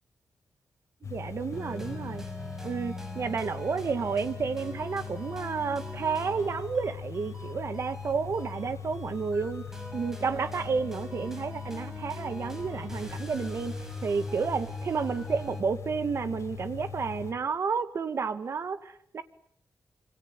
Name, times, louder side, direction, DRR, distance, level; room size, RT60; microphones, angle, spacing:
sound 1, 1.0-17.3, left 8 dB, 65° left, 5.1 m, -41 dB
voice 1, 1.0-2.2 2.6-9.6 9.9-13.7 14.0-19.2, right 5 dB, 55° right, 10 dB, 2.0 m, -31 dB
sound 2, 1.5-15.6, right 1 dB, 5° right, 5.5 m, -43 dB
27.0 x 26.0 x 8.2 m, 0.64 s
wide cardioid pair, 150°, 5 cm